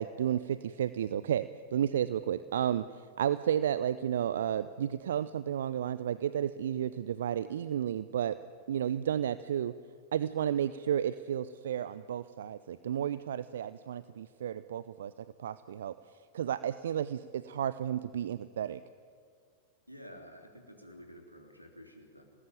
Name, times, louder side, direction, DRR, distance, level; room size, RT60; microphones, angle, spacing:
voice 1, 0.0-2.8 3.2-8.4 8.7-9.7 10.1-15.1 15.4-15.9 16.3-18.8, right 10 dB, 60° right, 15 dB, 0.6 m, -32 dB
voice 2, 19.9-22.2, equal, 90° right, 3 dB, 3.6 m, -51 dB
26.5 x 19.5 x 9.2 m, 2.1 s
figure-of-eight pair, 90°, 0 cm